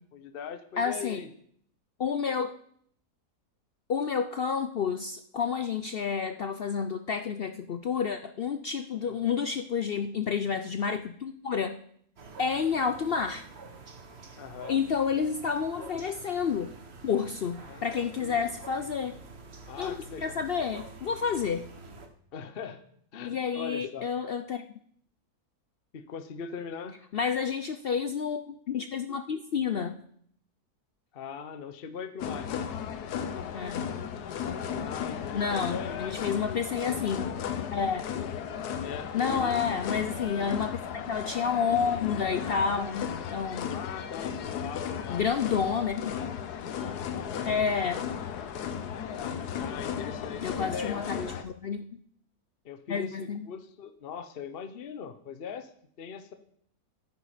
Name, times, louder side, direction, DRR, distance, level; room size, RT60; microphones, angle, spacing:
voice 1, 0.1-1.3 9.0-9.4 14.4-14.8 17.6-18.5 19.7-20.4 22.3-22.8 23.1-24.1 25.9-27.0 31.1-32.7 34.7-36.2 38.2-38.5 38.8-39.8 40.1-40.6 43.7-45.3 46.1-46.3 47.3-47.7 49.1-51.4 52.6-55.7 56.0-56.3, left 6 dB, 45° left, 10 dB, 0.9 m, -41 dB
voice 2, 0.8-1.2 2.0-2.5 3.9-11.8 12.4-13.5 14.7-16.7 17.0-19.2 19.8-21.7 23.2-24.6 27.1-30.0 33.5-34.0 35.3-37.3 37.7-38.1 39.1-43.7 45.1-46.1 47.5-48.1 50.4-51.2 51.4-51.9 52.9-53.5, left 6 dB, 65° left, 8 dB, 0.5 m, -30 dB
sound 1, 12.2-22.1, right 3 dB, 45° right, 1.4 m, -47 dB
sound 2, 32.2-51.4, left 8 dB, 85° left, 1.4 m, -35 dB
13.0 x 9.6 x 5.0 m, 0.65 s
omnidirectional pair, 1.6 m